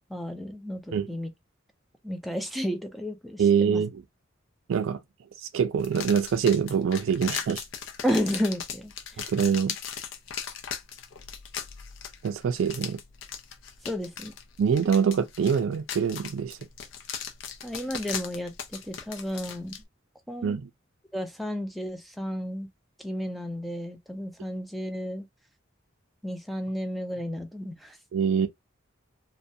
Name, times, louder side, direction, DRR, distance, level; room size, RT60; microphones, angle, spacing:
voice 1, 0.1-1.3 2.0-3.8 8.0-8.9 13.9-14.3 17.6-19.7 20.3-20.6 21.1-22.7 23.0-25.3 26.2-28.0, equal, ahead, 0.4 m, -32 dB
voice 2, 3.4-4.0 4.7-5.0 5.5-7.6 9.3-9.8 12.2-13.0 14.6-16.6 20.4-20.7 28.1-28.5, right 7 dB, 90° right, 0.4 m, -24 dB
sound 1, 5.8-19.8, left 7 dB, 70° left, 0.5 m, -38 dB
2.3 x 2.1 x 2.6 m
head